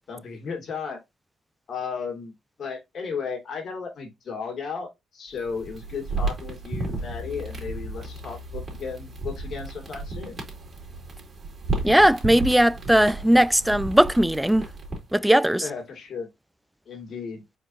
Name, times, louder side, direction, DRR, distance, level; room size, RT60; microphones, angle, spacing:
voice 1, 0.1-1.0 1.7-2.3 2.6-10.4 15.6-16.3 16.9-17.4, left 5 dB, 60° left, 2.0 m, -34 dB
sound 1, 5.4-15.2, right 3 dB, 35° right, 2.8 m, -33 dB
sound 2, 7.0-12.4, left 4 dB, 85° left, 2.0 m, -44 dB
voice 2, 11.8-14.7 15.1-15.6, right 1 dB, 5° right, 0.3 m, -18 dB
4.4 x 4.3 x 2.5 m
cardioid pair, 75°, 0 cm